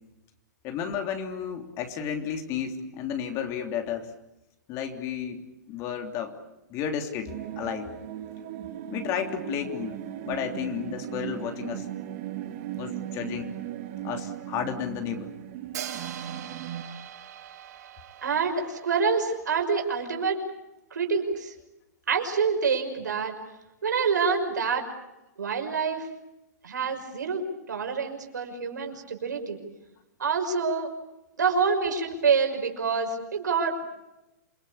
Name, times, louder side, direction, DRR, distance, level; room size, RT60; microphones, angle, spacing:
voice 1, 0.6-4.1 4.7-6.4 6.7-7.9 8.9-10.0 10.2-11.9 12.8-13.6 14.0-15.3, left 8 dB, 30° left, 6 dB, 3.3 m, -32 dB
sound 1, 7.3-16.8, right 12 dB, 45° right, 2.8 m, -37 dB
Hi-hat, 15.7-19.7, right 9 dB, 65° right, 7.4 m, -42 dB
voice 2, 18.2-20.4 20.9-21.5 22.1-23.3 23.8-24.9 25.4-26.1 26.6-29.6 30.2-30.9 31.4-33.8, right 5 dB, 90° right, 4 dB, 6.0 m, -26 dB
28.0 x 21.0 x 8.6 m, 0.94 s
hypercardioid pair, 140°, 9 cm